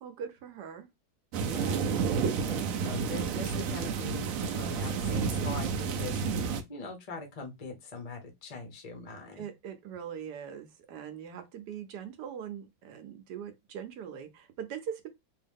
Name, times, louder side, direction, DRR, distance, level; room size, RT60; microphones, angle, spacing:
voice 1, 0.0-0.9 9.4-15.1, right 8 dB, 70° right, 1.1 m, -42 dB
sound 1, 1.3-6.6, right 5 dB, 85° right, 0.7 m, -30 dB
voice 2, 1.5-1.9 2.5-9.5, left 3 dB, 50° left, 0.4 m, -42 dB
3.0 x 2.7 x 3.4 m
omnidirectional pair, 2.0 m